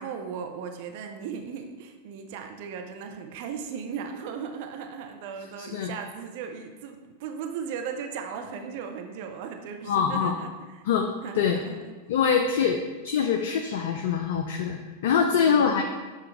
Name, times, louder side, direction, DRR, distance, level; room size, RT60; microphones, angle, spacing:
voice 1, 0.0-10.5 11.2-11.9 12.6-12.8 15.3-15.8, right 6 dB, 50° right, 5 dB, 0.4 m, -37 dB
voice 2, 5.6-5.9 9.9-10.4 10.8-11.1 11.3-11.6 12.1-12.8 13.0-15.8, left 7 dB, 55° left, 4 dB, 0.3 m, -24 dB
6.7 x 2.2 x 3.3 m, 1.3 s
figure-of-eight pair, 90°, 0 cm